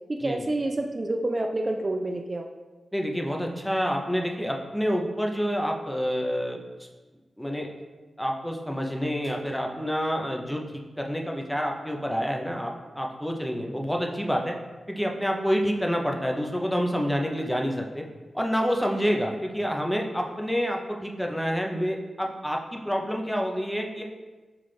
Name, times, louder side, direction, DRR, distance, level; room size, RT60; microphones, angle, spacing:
voice 1, 0.1-2.5, right 2 dB, 40° right, 3 dB, 0.3 m, -28 dB
voice 2, 2.9-6.9 7.4-7.7 8.2-10.6 11.0-14.5 14.9-18.0 18.3-24.0, equal, ahead, 1 dB, 0.6 m, -28 dB
5.7 x 2.4 x 3.3 m, 1.2 s
cardioid pair, 50°, 0 cm